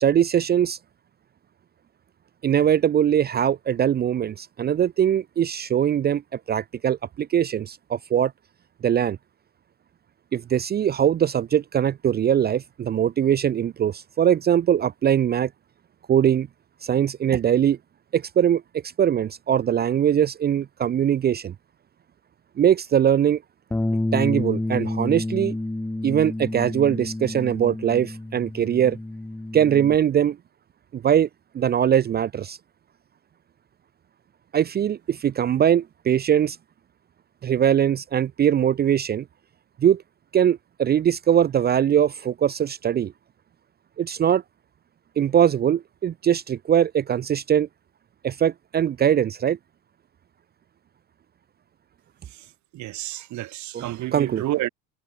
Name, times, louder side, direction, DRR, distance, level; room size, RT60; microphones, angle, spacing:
voice 1, 0.0-0.8 2.4-8.3 8.8-9.2 10.3-15.5 16.1-16.5 16.8-17.8 18.1-18.6 19.0-21.5 22.6-23.4 24.1-25.6 26.0-29.0 29.5-30.4 30.9-31.3 31.5-32.6 34.5-36.6 37.4-39.2 39.8-40.0 40.3-43.1 44.0-44.4 45.2-47.7 48.2-49.6 53.7-54.5, right 9 dB, 30° right, 0.5 m, -21 dB
Bass guitar, 23.7-30.0, left 2 dB, 10° left, 5.9 m, -29 dB
voice 2, 52.7-54.7, right 15 dB, 65° right, 2.6 m, -30 dB
cardioid pair, 105°, 31 cm